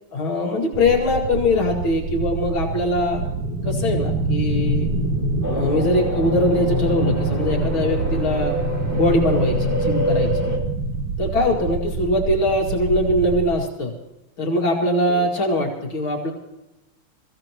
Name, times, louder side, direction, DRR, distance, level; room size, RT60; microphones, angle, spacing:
voice 1, 0.1-3.2 3.6-4.9 5.5-8.5 8.9-10.5 11.2-13.9 14.4-16.3, left 1 dB, 65° left, -1 dB, 3.0 m, -22 dB
sound 1, 0.7-13.6, right 5 dB, 65° right, 1.2 m, -29 dB
sound 2, 3.1-11.1, equal, 80° right, 3.2 m, -26 dB
sound 3, 5.4-10.6, right 1 dB, 5° right, 2.3 m, -28 dB
24.5 x 15.5 x 3.0 m, 0.93 s
omnidirectional pair, 2.4 m